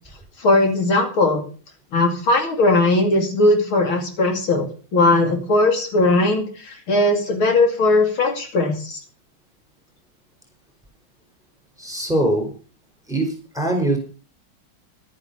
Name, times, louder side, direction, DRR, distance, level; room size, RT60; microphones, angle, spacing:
voice 1, 0.4-1.4 1.9-9.0, left 2 dB, 75° left, 4 dB, 3.4 m, -18 dB
voice 2, 11.8-12.5 13.1-14.0, right 1 dB, ahead, 3 dB, 4.6 m, -22 dB
11.5 x 9.7 x 6.9 m, 0.38 s
omnidirectional pair, 2.3 m